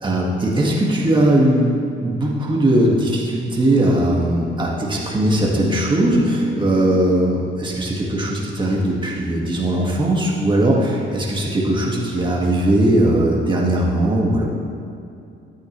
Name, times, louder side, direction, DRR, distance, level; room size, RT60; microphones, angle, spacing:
voice 1, 0.0-1.7 2.0-14.4, right 1 dB, 25° right, -3 dB, 2.0 m, -19 dB
12.5 x 9.4 x 3.3 m, 2.6 s
cardioid pair, 90°, 20 cm